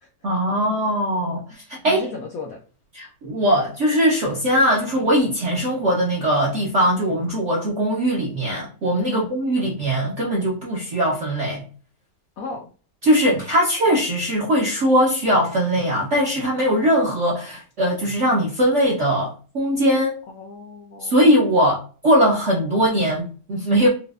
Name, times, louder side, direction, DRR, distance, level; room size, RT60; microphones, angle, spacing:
voice 1, 0.2-2.0 2.9-11.7 13.0-20.2 21.0-21.8 22.0-23.9, equal, 65° right, -3 dB, 0.7 m, -20 dB
voice 2, 1.8-2.6 9.0-9.3 12.4-12.7 20.3-21.3, left 4 dB, 75° left, 1 dB, 0.8 m, -34 dB
4.8 x 2.0 x 2.3 m, 0.39 s
omnidirectional pair, 2.1 m